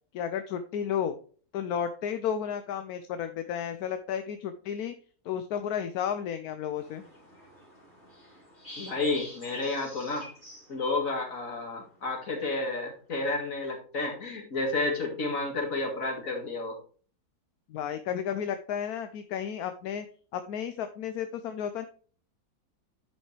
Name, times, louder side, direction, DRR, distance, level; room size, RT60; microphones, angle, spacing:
voice 1, 0.1-1.1 1.5-4.9 5.2-7.1 17.7-20.1 20.3-21.9, left 8 dB, 75° left, 9 dB, 1.1 m, -32 dB
sound 1, 6.7-11.8, left 1 dB, 30° left, 3.2 m, -48 dB
voice 2, 8.8-10.3 10.7-16.8, left 3 dB, 55° left, 2 dB, 2.4 m, -31 dB
9.9 x 5.3 x 3.3 m, 0.42 s
omnidirectional pair, 1.7 m